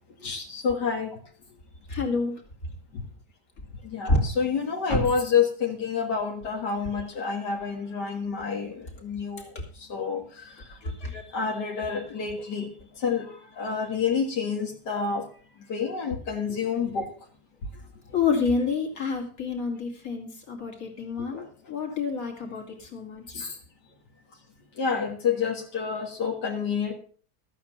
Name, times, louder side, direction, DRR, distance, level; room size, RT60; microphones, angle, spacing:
voice 1, 0.2-1.1 3.9-9.5 9.9-10.2 11.3-12.7 13.0-13.3 13.6-15.2 15.7-17.1 21.3-21.4 23.3-23.5 24.8-26.9, left 6 dB, 85° left, 1 dB, 2.3 m, -28 dB
voice 2, 1.9-2.4 4.0-4.2 4.9-5.0 9.4-9.5 10.8-11.2 18.1-23.4, left 4 dB, 55° left, 2 dB, 3.0 m, -28 dB
13.5 x 8.6 x 5.8 m, 0.43 s
omnidirectional pair, 1.8 m